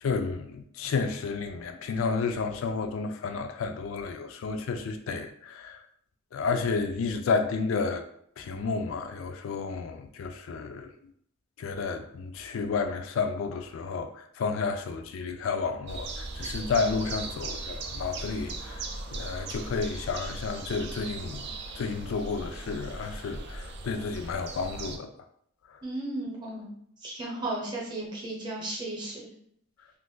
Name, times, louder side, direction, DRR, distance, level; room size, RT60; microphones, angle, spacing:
voice 1, 0.0-5.8 6.3-8.0 8.4-10.9 11.6-18.8 19.1-21.4 21.8-25.1 25.7-25.8, left 4 dB, 75° left, 7 dB, 0.3 m, -31 dB
sound 1, 15.9-25.0, right 3 dB, 55° right, 0.4 m, -38 dB
voice 2, 25.8-26.7 27.0-29.3, right 2 dB, 20° right, -3 dB, 0.8 m, -34 dB
2.5 x 2.5 x 3.7 m, 0.67 s
head